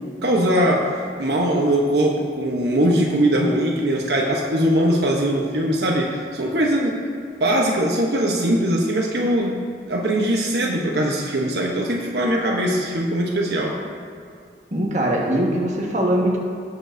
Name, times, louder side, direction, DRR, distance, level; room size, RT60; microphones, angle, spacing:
voice 1, 0.2-0.9 1.2-7.1 7.4-9.6 9.9-13.8, right 1 dB, 75° right, -1 dB, 1.0 m, -21 dB
voice 2, 14.7-16.4, right 1 dB, 40° right, -2 dB, 1.5 m, -21 dB
17.5 x 7.2 x 2.7 m, 2.3 s
head